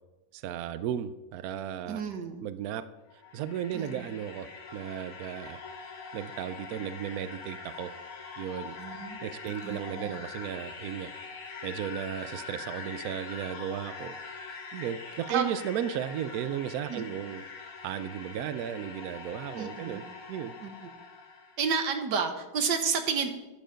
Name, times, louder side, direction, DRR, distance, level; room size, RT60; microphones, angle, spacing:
voice 1, 0.3-2.0 2.4-2.8 3.3-5.6 6.1-7.9 8.4-8.8 9.2-11.1 11.6-14.1 14.7-17.4 17.8-20.6, right 9 dB, 85° right, 13 dB, 0.8 m, -35 dB
voice 2, 1.9-2.4 3.7-4.0 8.8-9.2 9.6-10.1 15.3-15.4 16.9-17.1 19.5-20.0 20.6-20.7 21.6-23.3, right 6 dB, 60° right, 7 dB, 1.7 m, -31 dB
sound 1, 3.0-21.7, left 4 dB, 90° left, 2.3 m, -43 dB
11.5 x 9.2 x 5.1 m, 1.0 s
omnidirectional pair, 2.2 m